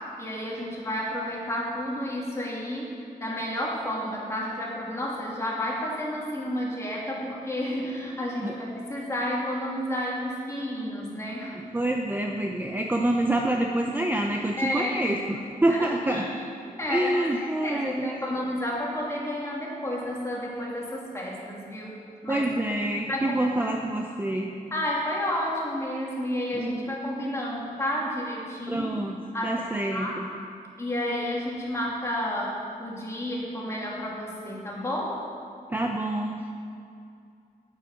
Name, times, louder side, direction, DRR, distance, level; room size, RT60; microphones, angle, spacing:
voice 1, 0.2-11.6 14.6-14.9 15.7-16.3 16.8-22.4 23.1-23.7 24.7-28.9 29.3-30.1 30.8-35.2, left 1 dB, 20° left, -4 dB, 2.6 m, -31 dB
voice 2, 11.7-16.3 16.9-18.2 22.3-24.5 26.5-27.0 28.7-29.2 29.4-30.3 35.7-36.5, right 1 dB, 10° right, 2 dB, 0.6 m, -27 dB
8.7 x 8.2 x 7.1 m, 2.4 s
wide cardioid pair, 115°, 15 cm